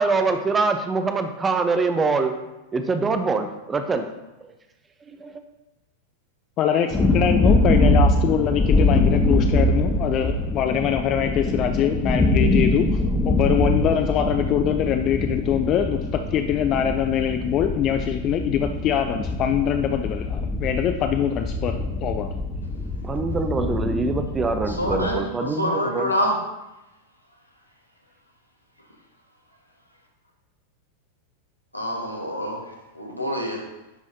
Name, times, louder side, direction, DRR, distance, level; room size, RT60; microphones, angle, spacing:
voice 1, 0.0-2.3 2.7-4.1 4.4-4.5 5.2-5.3 23.0-26.1, right 3 dB, 15° right, 7 dB, 0.7 m, -24 dB
voice 2, 6.6-22.3, left 9 dB, 35° left, 6 dB, 0.4 m, -23 dB
sound 1, 6.9-25.1, left 2 dB, 15° left, 0.9 m, -23 dB
voice 3, 24.7-26.3 31.7-32.6 33.0-33.6, equal, 90° left, -1 dB, 1.4 m, -26 dB
11.0 x 4.8 x 2.7 m, 0.98 s
figure-of-eight pair, 90°, 0 cm